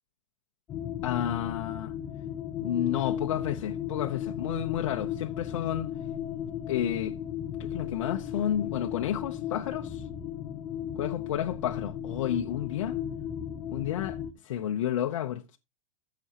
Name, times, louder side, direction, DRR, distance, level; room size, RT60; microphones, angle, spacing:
sound 1, 0.7-14.3, left 9 dB, 15° left, 0.8 m, -35 dB
voice 1, 1.0-1.9 2.6-5.9 6.7-7.2 7.6-10.1 11.0-13.0 13.7-14.2 14.4-15.6, left 10 dB, 60° left, 0.9 m, -31 dB
14.0 x 7.0 x 2.9 m
supercardioid pair, 170°, 17 cm